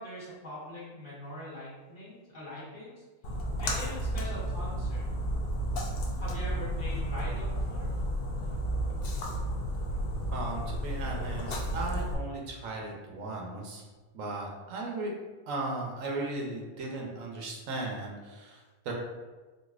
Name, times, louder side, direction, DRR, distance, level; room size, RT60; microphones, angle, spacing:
voice 1, 0.0-3.0 3.6-5.0 6.2-7.9, left 1 dB, 40° left, -8 dB, 1.0 m, -42 dB
Splash splatter, 3.2-12.1, equal, 60° left, 0.6 m, -32 dB
voice 2, 10.3-13.8 14.1-15.1 15.5-18.9, right 2 dB, 75° right, 0 dB, 1.0 m, -36 dB
4.0 x 2.6 x 2.3 m, 1.3 s
omnidirectional pair, 1.4 m